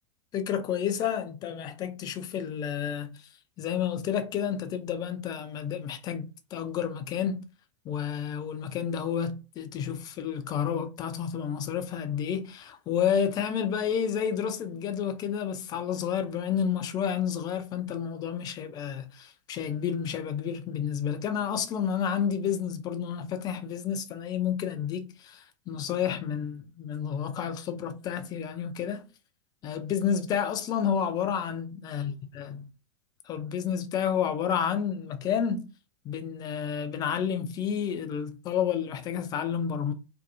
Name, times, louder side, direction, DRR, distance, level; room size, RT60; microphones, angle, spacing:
voice 1, 0.3-3.3 3.6-7.4 7.9-29.1 29.6-32.7 33.3-35.7 36.0-39.9, left 8 dB, 25° left, 0.4 m, -30 dB
2.6 x 2.2 x 2.7 m
figure-of-eight pair, 90°, 16 cm